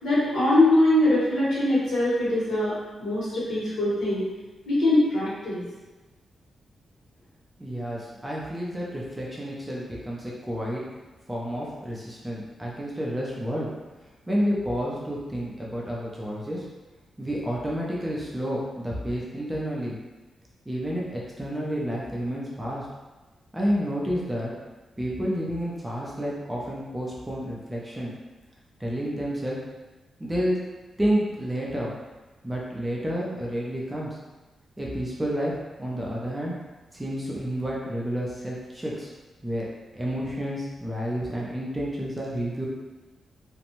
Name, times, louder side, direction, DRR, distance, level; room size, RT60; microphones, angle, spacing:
voice 1, 0.0-4.2 4.6-5.7, left 1 dB, 75° left, -8 dB, 1.2 m, -22 dB
voice 2, 7.6-10.8 11.3-13.7 14.3-16.7 17.2-20.0 20.7-22.9 23.5-24.5 25.0-28.1 28.8-29.6 30.2-30.6 31.0-32.0 32.4-34.2 34.8-35.5 35.8-36.5 36.9-39.1 39.4-39.7 39.9-42.7, equal, 10° right, -5 dB, 0.4 m, -30 dB
2.5 x 2.1 x 2.9 m, 1.2 s
wide cardioid pair, 165°, 0 cm